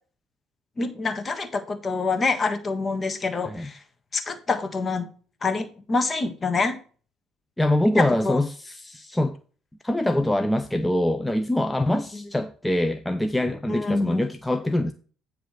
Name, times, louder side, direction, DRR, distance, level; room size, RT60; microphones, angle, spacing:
voice 1, 0.8-3.8 4.1-5.1 5.4-6.8 7.9-8.4 13.7-14.2, left 3 dB, 35° left, 1.4 m, -26 dB
voice 2, 7.6-9.4 9.8-14.9, left 1 dB, 10° left, 0.6 m, -24 dB
9.2 x 3.4 x 6.5 m
supercardioid pair, 70°, 0 cm